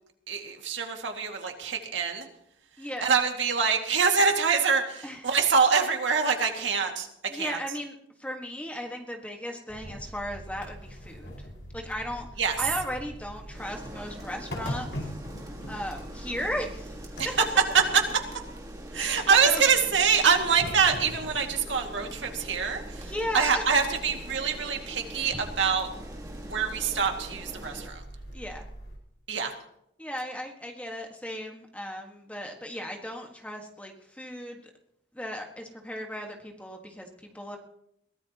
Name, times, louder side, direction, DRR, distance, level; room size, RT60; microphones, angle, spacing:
voice 1, 0.3-2.3 3.0-7.1 7.3-7.6 12.4-12.6 17.2-17.3 17.7-18.0 18.9-25.9 26.3-28.0 29.3-29.5, right 5 dB, 90° right, 3 dB, 2.2 m, -25 dB
voice 2, 7.3-7.9 8.2-11.3 11.7-12.3 12.6-14.9 15.7-17.3 18.9-19.6 23.0-23.6 28.3-28.6 30.0-34.6 35.1-37.6, equal, 5° left, 2 dB, 1.6 m, -36 dB
sound 1, 9.7-29.0, equal, 75° left, 5.4 m, -42 dB
Rain, 13.5-27.9, right 1 dB, 20° right, 1.9 m, -45 dB
22.5 x 16.5 x 3.0 m, 0.76 s
head